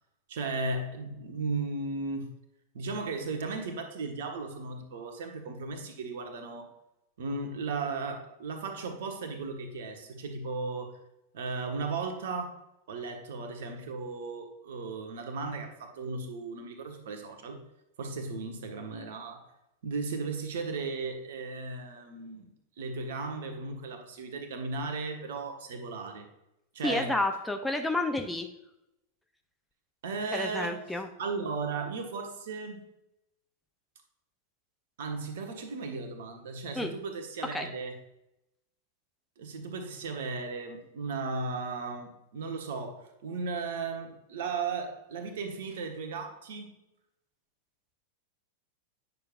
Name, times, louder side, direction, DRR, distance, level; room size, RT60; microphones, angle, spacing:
voice 1, 0.3-2.3 2.7-6.7 7.2-11.0 11.3-12.6 12.9-17.6 18.0-19.5 19.8-22.5 22.8-26.3 26.7-27.2 30.0-30.8 31.2-32.8 35.0-38.0 39.4-46.7, right 4 dB, 55° right, 4 dB, 1.3 m, -36 dB
voice 2, 26.8-28.5 30.3-31.1 36.8-37.0 37.5-37.7, left 2 dB, 5° left, 5 dB, 0.6 m, -30 dB
9.4 x 6.6 x 2.5 m, 0.87 s
figure-of-eight pair, 90°, 0 cm